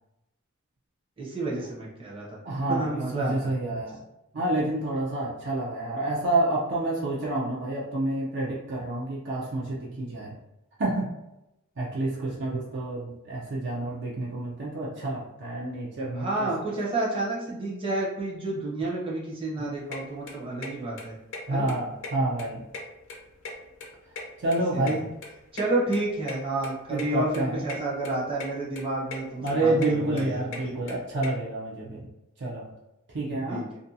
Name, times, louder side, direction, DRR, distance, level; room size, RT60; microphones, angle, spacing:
voice 1, 1.2-2.4 2.7-3.5 16.1-21.1 21.5-21.7 24.7-25.0 25.5-30.9 33.5-33.6, right 2 dB, 25° right, -5 dB, 0.7 m, -30 dB
voice 2, 2.4-4.0 4.3-10.4 10.8-11.1 11.8-16.5 21.5-22.6 24.4-25.1 26.9-27.6 29.4-32.1 32.4-32.7 33.1-33.6, right 2 dB, 55° right, -4 dB, 0.5 m, -28 dB
sound 1, 19.9-20.0 20.3-20.7 21.0-21.1 21.3-21.4 21.7-22.4 22.7-23.9 24.2-25.7 25.9-26.0 26.3-26.4 26.6-26.7 27.0-27.1 27.3-27.8 28.0-28.5 28.7-29.2 29.5-31.3, left 3 dB, 60° left, 0.5 m, -38 dB
2.5 x 2.2 x 2.7 m, 0.90 s
head